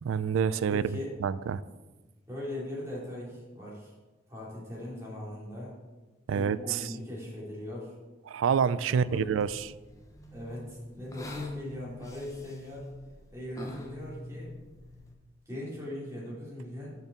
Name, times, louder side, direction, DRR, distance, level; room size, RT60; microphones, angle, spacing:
voice 1, 0.0-1.6 6.3-6.9 8.3-9.5, right 7 dB, 90° right, 17 dB, 0.3 m, -27 dB
voice 2, 0.7-1.1 2.3-3.9 4.3-5.7 6.3-7.9 8.9-9.2 10.3-12.9 13.3-14.5 15.5-17.0, left 1 dB, 15° right, -6 dB, 2.7 m, -40 dB
sound 1, 8.9-15.2, left 1 dB, 15° left, 0.7 m, -45 dB
6.5 x 5.3 x 7.1 m, 1.2 s
head